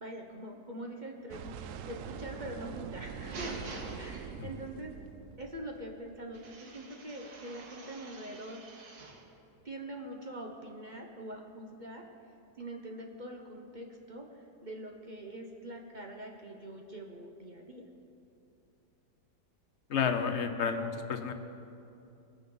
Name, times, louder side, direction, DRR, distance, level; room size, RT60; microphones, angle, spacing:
voice 1, 0.0-3.6 4.0-4.9 5.4-8.7 9.6-12.1 12.6-17.8, right 1 dB, 35° right, 1 dB, 0.9 m, -44 dB
sound 1, 1.3-6.4, right 8 dB, 80° right, 0.7 m, -44 dB
sound 2, 2.8-4.8 6.3-9.3, right 3 dB, 60° right, 1.7 m, -47 dB
voice 2, 19.9-21.3, left 6 dB, 55° left, 7 dB, 0.8 m, -31 dB
21.0 x 9.2 x 3.9 m, 2.6 s
omnidirectional pair, 1.9 m